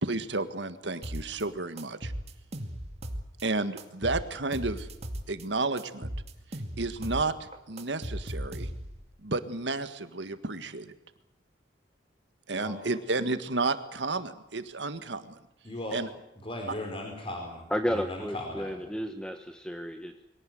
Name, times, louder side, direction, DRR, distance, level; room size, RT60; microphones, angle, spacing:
voice 1, 0.0-2.1 3.4-4.9 5.3-6.1 6.8-8.7 9.2-10.9 12.5-15.3 15.9-16.1, right 3 dB, 65° right, 11 dB, 1.7 m, -31 dB
sound 1, 1.0-1.4 1.8-3.4 3.8-5.4 5.8-7.3 7.5-9.0, equal, 35° right, 2.4 m, -37 dB
voice 2, 15.6-16.0 16.4-18.7, left 1 dB, 30° left, 2 dB, 4.6 m, -37 dB
voice 3, 17.7-20.2, equal, 5° left, 7 dB, 1.2 m, -32 dB
23.5 x 17.5 x 9.3 m, 0.86 s
head